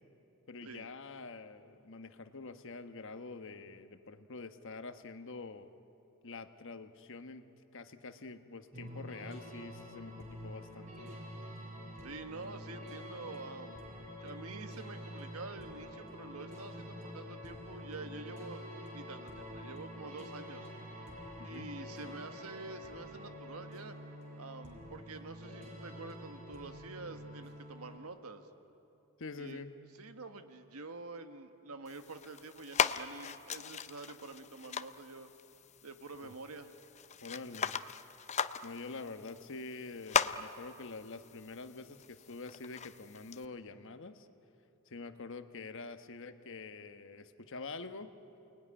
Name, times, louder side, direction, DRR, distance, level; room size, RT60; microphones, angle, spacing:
voice 1, 0.5-5.7 6.2-7.5 7.7-11.1 21.4-21.7 29.2-29.8 36.2-36.3 37.2-37.8 38.6-44.3 44.9-48.1, left 3 dB, 60° left, 9 dB, 1.2 m, -46 dB
sound 1, 8.7-28.0, equal, 35° right, 4.8 m, -47 dB
voice 2, 12.0-13.8 14.2-18.6 18.9-20.7 21.4-24.0 24.4-28.5 29.4-29.6 30.0-35.3 35.8-36.7, right 3 dB, 90° right, 8 dB, 1.6 m, -47 dB
sound 2, 31.9-43.5, left 7 dB, 30° left, 0.6 m, -38 dB
28.5 x 20.0 x 10.0 m, 2.9 s
head